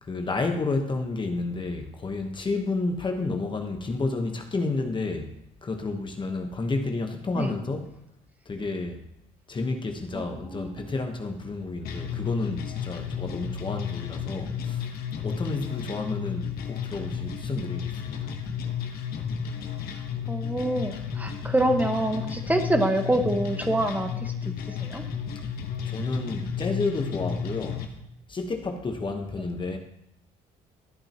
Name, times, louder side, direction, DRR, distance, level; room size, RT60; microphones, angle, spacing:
voice 1, 0.0-5.3 5.6-8.0 8.5-9.0 9.5-14.9 15.2-18.3 25.8-27.8 28.3-29.8, left 3 dB, 30° left, 4 dB, 1.2 m, -30 dB
voice 2, 10.1-10.8 20.3-24.5 24.8-25.0, right 1 dB, 10° right, 4 dB, 1.4 m, -26 dB
sound 1, 11.8-27.8, left 7 dB, 75° left, 1.3 m, -33 dB
13.0 x 8.7 x 3.0 m, 0.78 s
cardioid pair, 85°, 16 cm